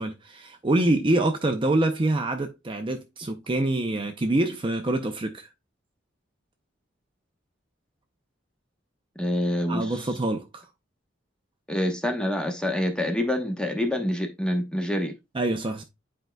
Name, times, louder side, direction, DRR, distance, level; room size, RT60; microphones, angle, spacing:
voice 1, 0.0-5.5 9.7-10.6 15.3-15.8, right 2 dB, 25° right, 0.5 m, -25 dB
voice 2, 9.2-10.0 11.7-15.1, left 1 dB, 5° left, 1.0 m, -26 dB
10.0 x 4.6 x 2.2 m
head